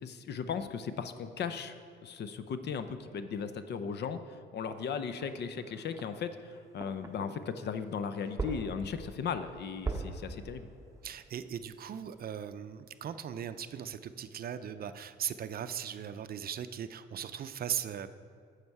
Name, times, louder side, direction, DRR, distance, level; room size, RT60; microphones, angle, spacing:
voice 1, 0.0-1.8 2.0-10.7, left 6 dB, 60° left, 10 dB, 0.6 m, -37 dB
sound 1, 4.7-7.8 8.2-12.9 13.3-13.4, right 3 dB, 15° right, 0.9 m, -42 dB
voice 2, 11.0-18.1, right 9 dB, 50° right, 11 dB, 0.5 m, -38 dB
9.6 x 6.5 x 4.7 m, 2.2 s
cardioid pair, 90°, 20 cm